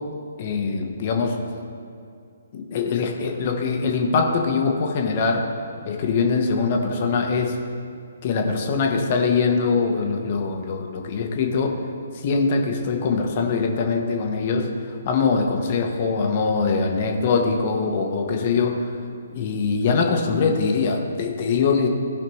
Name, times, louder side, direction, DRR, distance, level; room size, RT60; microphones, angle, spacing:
voice 1, 0.4-1.4 2.5-5.5 5.8-7.6 8.2-11.8 12.2-18.9 19.3-21.9, left 4 dB, 35° left, 2 dB, 1.0 m, -22 dB
15.5 x 5.7 x 3.1 m, 2.4 s
figure-of-eight pair, 130°, 0 cm